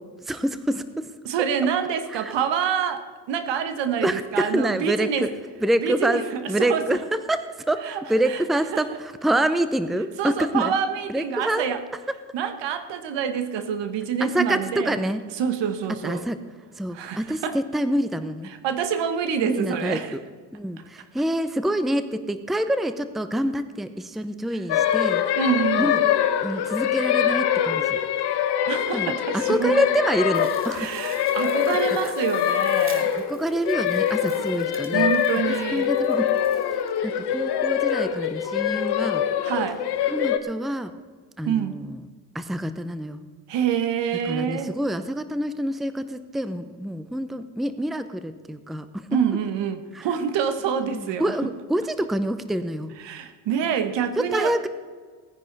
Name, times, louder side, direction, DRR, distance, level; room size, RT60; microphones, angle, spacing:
voice 1, 0.2-1.1 2.1-2.4 4.0-5.3 5.6-10.7 11.1-11.6 12.1-12.2 14.2-15.2 15.9-16.4 16.7-18.5 19.4-20.2 20.5-25.2 25.8-28.0 28.9-30.9 31.7-32.0 33.1-35.1 35.5-36.3 36.7-39.2 40.1-40.9 41.4-42.1 42.3-43.2 44.2-49.1 49.9-50.1 50.8-52.9 54.2-54.7, right 1 dB, ahead, 11 dB, 0.7 m, -27 dB
voice 2, 1.2-5.3 5.8-6.2 6.6-6.8 7.9-8.0 8.3-8.4 8.7-8.8 10.2-11.8 12.3-15.0 15.4-16.2 16.9-17.6 18.6-20.1 25.4-26.0 28.7-29.7 30.7-33.1 34.9-35.9 36.8-36.9 39.4-39.8 41.5-41.8 43.5-44.7 49.1-51.3 53.0-54.5, right 8 dB, 65° right, 9 dB, 1.5 m, -26 dB
sound 1, 24.7-40.4, left 9 dB, 55° left, 1.2 m, -24 dB
sound 2, 30.3-37.0, right 3 dB, 25° right, 2.1 m, -47 dB
18.0 x 9.9 x 4.1 m, 1.5 s
hypercardioid pair, 70°, 47 cm